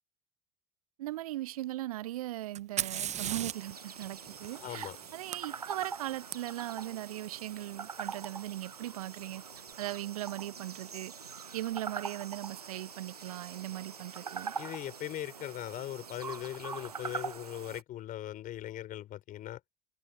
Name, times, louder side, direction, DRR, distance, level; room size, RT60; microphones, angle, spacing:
voice 1, 1.0-9.4 9.8-11.1 11.5-14.5, right 15 dB, 70° right, 0.8 m, -39 dB
Fire, 2.6-6.4 8.2-8.3 9.2-9.6, right 10 dB, 35° right, 1.1 m, -39 dB
sound 1, 3.3-17.8, right 6 dB, 85° right, 1.1 m, -43 dB
voice 2, 4.5-5.0 14.6-19.6, left 13 dB, 45° left, 3.9 m, -40 dB
figure-of-eight pair, 65°, 19 cm